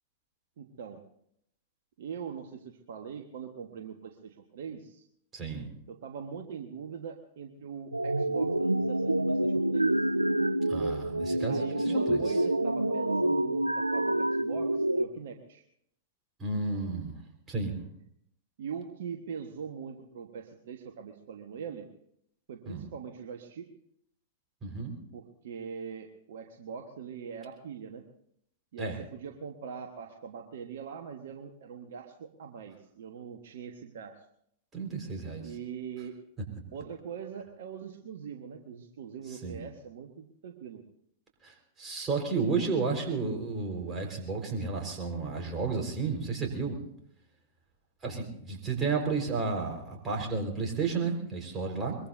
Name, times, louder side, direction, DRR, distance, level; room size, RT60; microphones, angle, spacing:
voice 1, 0.6-1.0 2.0-5.0 5.9-9.9 11.5-15.6 18.6-21.9 22.5-23.7 25.1-28.0 28.7-34.1 35.4-36.1 36.7-40.8, right 7 dB, 60° right, 5 dB, 1.3 m, -42 dB
voice 2, 5.3-5.7 10.7-12.4 16.4-17.2 17.5-17.8 22.7-22.9 24.6-24.9 28.8-29.0 34.7-35.5 39.3-39.6 41.4-46.8 48.0-52.0, right 4 dB, 20° right, 1 dB, 4.4 m, -32 dB
sound 1, 7.9-15.1, right 1 dB, 90° right, 0.5 m, -27 dB
23.0 x 22.5 x 2.6 m, 0.71 s
figure-of-eight pair, 100°, 0 cm